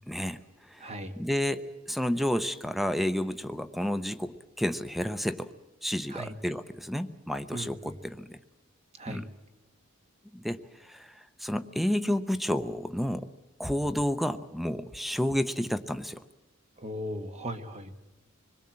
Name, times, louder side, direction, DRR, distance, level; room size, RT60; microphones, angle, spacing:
voice 1, 0.1-5.5 5.8-8.4 9.1-9.3 10.3-13.3 13.6-16.2, equal, ahead, 11 dB, 0.7 m, -31 dB
voice 2, 0.8-1.2 6.1-6.3 7.5-8.0 9.0-9.2 16.8-17.9, equal, 30° right, 7 dB, 1.4 m, -37 dB
25.5 x 21.5 x 7.6 m, 1.1 s
head